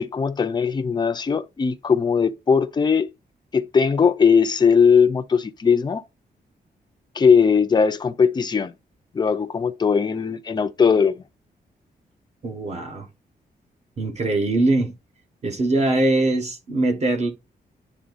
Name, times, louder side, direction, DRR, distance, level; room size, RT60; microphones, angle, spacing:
voice 1, 0.0-3.1 3.5-6.0 7.1-8.7 9.1-11.2, left 6 dB, 25° left, 0.5 m, -19 dB
voice 2, 12.4-13.1 14.0-14.9 15.4-17.3, right 2 dB, 40° right, 1.5 m, -22 dB
10.0 x 3.7 x 2.5 m
wide cardioid pair, 180°, 17 cm